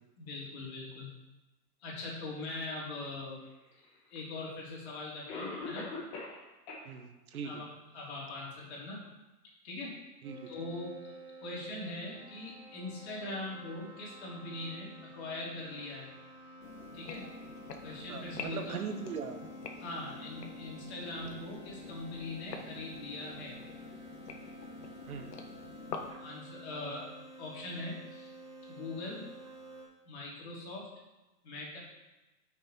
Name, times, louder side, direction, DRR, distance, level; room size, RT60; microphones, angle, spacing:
voice 1, 0.2-1.1 1.8-3.4 4.1-5.9 7.4-7.7 7.9-9.0 9.6-10.0 10.5-11.1 11.4-16.1 16.9-17.3 17.8-18.8 19.8-23.6 26.2-28.3 28.7-29.3 30.1-30.9 31.4-31.8, left 2 dB, 40° left, -5 dB, 3.4 m, -41 dB
Cough, 4.2-4.3 5.3-6.4 6.7-6.8 7.3-7.4 8.0-8.1, left 3 dB, 20° left, 1.4 m, -40 dB
voice 2, 6.8-7.6 10.2-10.5 18.1-19.4 25.1-25.3 26.1-26.2, right 6 dB, 60° right, 6 dB, 1.3 m, -40 dB
sound 1, 10.2-29.8, right 1 dB, 10° right, 1.9 m, -51 dB
sound 2, 16.6-26.1, left 4 dB, 80° left, 1.5 m, -46 dB
10.0 x 6.4 x 4.4 m, 1.1 s
hypercardioid pair, 170°, 48 cm